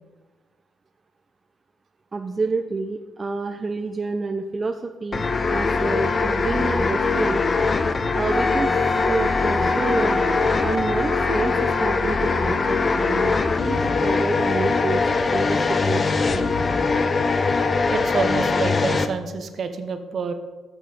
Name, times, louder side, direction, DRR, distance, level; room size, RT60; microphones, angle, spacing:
voice 1, 2.1-7.4 8.1-8.7 9.0-10.2 10.6-16.1 16.3-16.5, right 3 dB, 30° right, 6 dB, 0.5 m, -28 dB
sound 1, 5.1-19.1, left 4 dB, 35° left, 0.6 m, -22 dB
Wind instrument woodwind instrument, 8.3-12.6 13.3-13.4, left 1 dB, 10° left, 1.2 m, -29 dB
voice 2, 17.9-20.3, right 5 dB, 55° right, 8 dB, 0.8 m, -27 dB
8.4 x 7.3 x 4.3 m, 1.2 s
cardioid pair, 90°, 0 cm